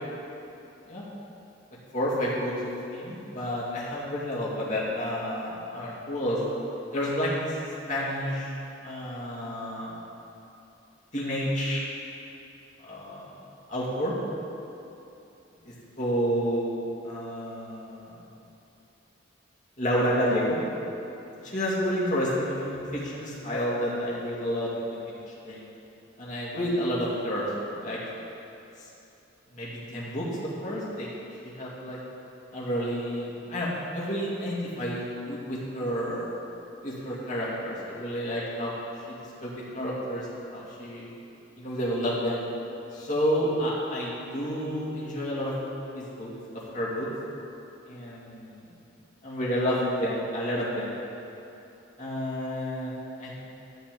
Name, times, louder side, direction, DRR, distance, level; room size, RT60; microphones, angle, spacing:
voice 1, 1.9-2.6 2.9-6.4 6.9-8.6 8.8-9.9 11.1-11.9 12.8-13.3 13.7-14.1 15.6-18.2 19.8-20.6 21.4-25.6 26.2-28.0 28.8-28.9 29.5-30.3 30.6-31.1 31.4-32.0 32.5-36.3 36.8-39.0 39.4-41.1 41.6-42.5 42.9-45.5 45.9-46.3 46.7-47.1 47.9-48.6 49.2-51.0 52.0-53.4, equal, 40° left, -7 dB, 2.2 m, -30 dB
13.0 x 4.3 x 8.2 m, 2.9 s
head